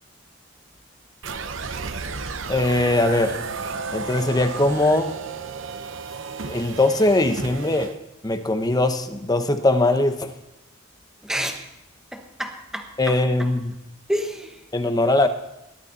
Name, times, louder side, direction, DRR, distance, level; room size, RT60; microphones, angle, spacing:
sound 1, 1.2-7.9, right 4 dB, 65° right, 0.9 m, -33 dB
voice 1, 2.5-3.4 3.9-5.1 6.5-8.0 8.2-10.3 13.0-13.7 14.7-15.3, left 2 dB, 20° left, 8 dB, 0.9 m, -21 dB
voice 2, 11.2-11.7 12.1-13.5 14.1-14.6, equal, ahead, 4 dB, 1.3 m, -30 dB
19.0 x 12.0 x 4.1 m, 0.92 s
head